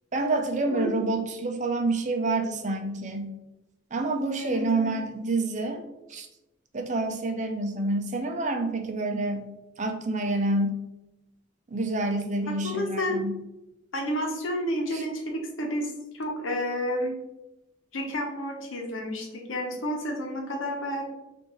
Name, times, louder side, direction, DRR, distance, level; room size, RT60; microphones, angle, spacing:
voice 1, 0.1-3.3 3.9-5.8 6.1-6.3 6.7-9.5 9.8-10.8 11.7-13.4 14.9-15.0, right 2 dB, 40° right, 5 dB, 0.5 m, -28 dB
voice 2, 4.4-5.0 12.4-13.2 13.9-17.1 17.9-21.0, equal, 85° left, 1 dB, 0.9 m, -31 dB
6.1 x 2.6 x 3.0 m, 0.98 s
head